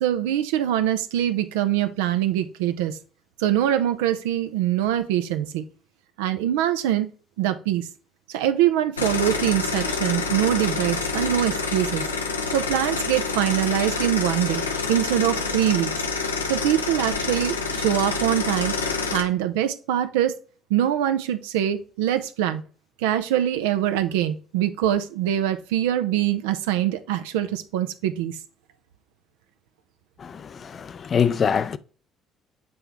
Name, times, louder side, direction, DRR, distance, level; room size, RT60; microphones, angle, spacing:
voice 1, 0.0-3.0 3.4-5.6 6.2-7.1 7.4-7.9 8.3-12.0 12.5-14.6 14.9-15.9 16.4-18.8 19.1-20.3 20.7-22.6 23.0-28.4, right 11 dB, 75° right, 0.6 m, -23 dB
sound 1, 9.0-19.2, left 4 dB, 85° left, 0.7 m, -27 dB
voice 2, 30.2-31.8, left 7 dB, 45° left, 0.5 m, -24 dB
7.8 x 4.4 x 3.5 m
figure-of-eight pair, 50°, 0 cm